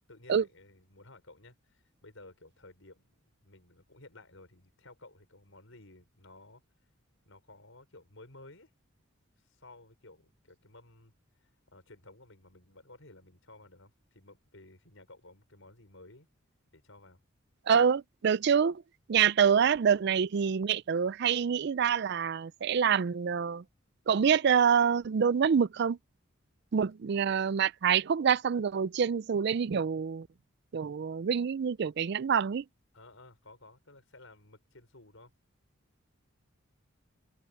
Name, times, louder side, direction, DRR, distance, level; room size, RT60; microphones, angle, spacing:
voice 1, 0.1-6.6 7.3-8.7 9.5-11.1 11.4-16.3 16.7-17.2 26.8-26.9 32.9-35.3, left 2 dB, 70° left, 5.9 m, -55 dB
voice 2, 17.7-18.8 19.1-23.6 24.1-26.0 26.7-30.3 30.7-32.6, right 7 dB, 55° right, 0.4 m, -26 dB
head